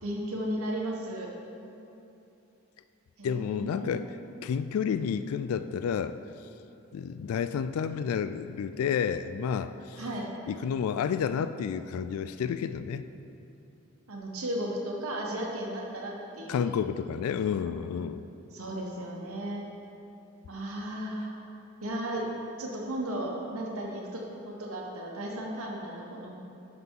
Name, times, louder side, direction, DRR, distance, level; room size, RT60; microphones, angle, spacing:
voice 1, 0.0-1.3 3.2-4.0 10.0-10.4 14.1-16.7 17.3-17.5 18.5-19.6 20.5-21.3 21.8-22.3 22.6-26.3, right 1 dB, 80° right, -1 dB, 1.1 m, -35 dB
voice 2, 3.2-4.1 4.4-6.2 6.9-10.0 10.5-13.0 16.5-18.2, left 7 dB, 85° left, 15 dB, 0.3 m, -30 dB
11.5 x 5.8 x 3.7 m, 2.8 s
head